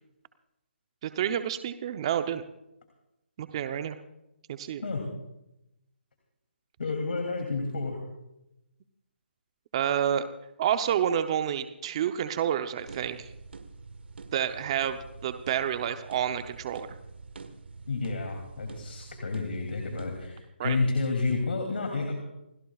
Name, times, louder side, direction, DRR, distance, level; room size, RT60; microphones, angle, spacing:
voice 1, 1.0-2.4 3.4-4.0 4.5-4.8 9.7-10.2 10.6-13.3 14.3-16.9 20.6-20.8, right 9 dB, 30° right, 9 dB, 0.7 m, -29 dB
voice 2, 6.8-8.0 17.9-22.2, left 3 dB, 60° left, 2 dB, 2.9 m, -30 dB
sound 1, 12.8-20.3, right 4 dB, 65° right, 1.5 m, -46 dB
29.0 x 17.0 x 2.4 m, 0.93 s
hypercardioid pair, 160°, 6 cm